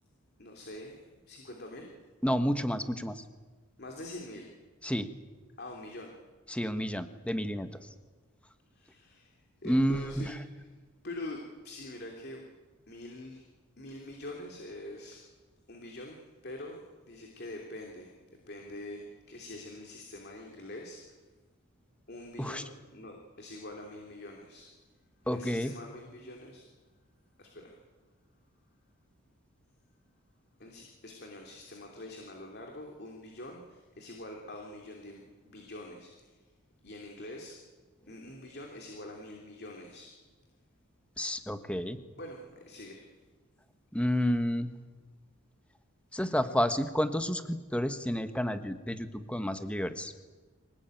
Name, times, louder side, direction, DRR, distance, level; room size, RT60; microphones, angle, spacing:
voice 1, 0.4-1.9 3.8-4.5 5.6-6.2 8.7-10.7 11.0-12.4 12.9-13.5 13.8-15.3 15.7-18.1 18.5-21.2 22.1-24.7 25.2-26.6 27.4-27.8 30.6-36.4 36.8-37.6 38.1-40.1 42.2-43.1, left 1 dB, 45° left, 1 dB, 3.1 m, -45 dB
voice 2, 2.2-3.2 4.8-5.1 6.5-7.7 9.6-10.3 22.4-22.6 25.3-25.7 41.2-42.0 43.9-44.7 46.1-50.3, equal, 5° left, 9 dB, 1.3 m, -30 dB
25.0 x 19.0 x 9.2 m, 1.3 s
head